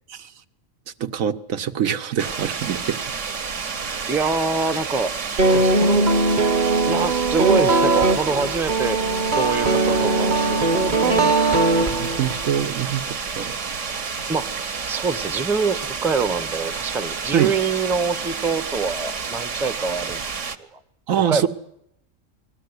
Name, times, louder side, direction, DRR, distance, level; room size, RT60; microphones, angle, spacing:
voice 1, 1.0-3.0 3.8-4.1 11.8-13.6 17.3-17.5 21.1-21.5, right 9 dB, 80° right, 9 dB, 1.4 m, -24 dB
sound 1, 2.2-20.6, right 5 dB, 65° right, 1.5 m, -30 dB
voice 2, 4.1-5.1 5.5-6.1 6.9-9.0 9.3-11.3 14.3-14.5 14.9-20.2 20.6-20.8 21.3-21.5, right 4 dB, ahead, 9 dB, 0.6 m, -25 dB
sound 2, 5.4-12.5, right 2 dB, 40° right, 1.0 m, -20 dB
21.0 x 14.5 x 9.5 m, 0.79 s
omnidirectional pair, 1.4 m